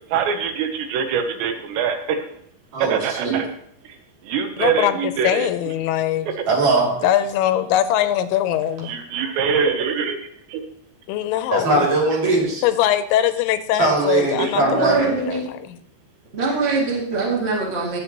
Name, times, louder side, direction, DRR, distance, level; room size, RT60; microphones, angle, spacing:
voice 1, 0.1-2.3 2.8-3.5 4.3-5.5 6.4-6.5 8.8-10.2 10.5-10.6 14.4-14.5, right 6 dB, 80° right, 7 dB, 3.0 m, -23 dB
voice 2, 2.7-3.3 6.5-6.9 11.5-12.6 13.8-15.1, right 3 dB, 50° right, -3 dB, 3.9 m, -20 dB
voice 3, 4.6-6.3 7.0-8.9 11.1-11.9 12.6-15.8, left 11 dB, 85° left, 11 dB, 2.9 m, -22 dB
voice 4, 14.6-15.5 16.3-18.0, right 3 dB, 35° right, -3 dB, 1.0 m, -23 dB
18.0 x 7.7 x 3.0 m, 0.69 s
omnidirectional pair, 5.2 m